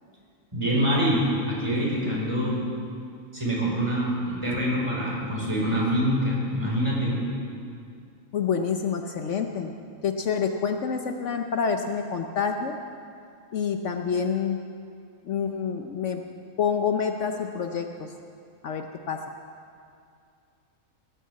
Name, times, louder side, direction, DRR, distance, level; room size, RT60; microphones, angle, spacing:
voice 1, 0.5-2.6 3.3-7.2, equal, 20° right, -5 dB, 4.8 m, -25 dB
voice 2, 8.3-9.7 10.0-12.8 13.5-14.6 15.2-16.2 16.6-18.1 18.6-19.2, left 6 dB, 65° left, 5 dB, 1.1 m, -27 dB
20.0 x 9.6 x 7.5 m, 2.4 s
omnidirectional pair, 1.4 m